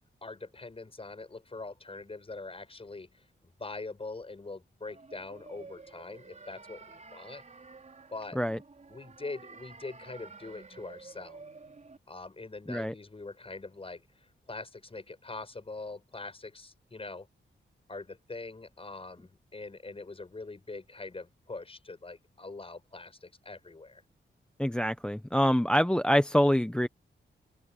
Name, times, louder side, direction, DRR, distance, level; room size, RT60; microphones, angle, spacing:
voice 1, 0.2-3.3 3.6-7.4 8.1-8.4 8.9-11.4 12.1-17.3 17.9-24.0, left 3 dB, 30° left, 6.2 m, -43 dB
sound 1, 4.9-12.0, right 4 dB, 40° right, 4.8 m, -51 dB
voice 2, 24.6-26.9, equal, 5° left, 0.8 m, -25 dB
open air
wide cardioid pair, 105°, 19 cm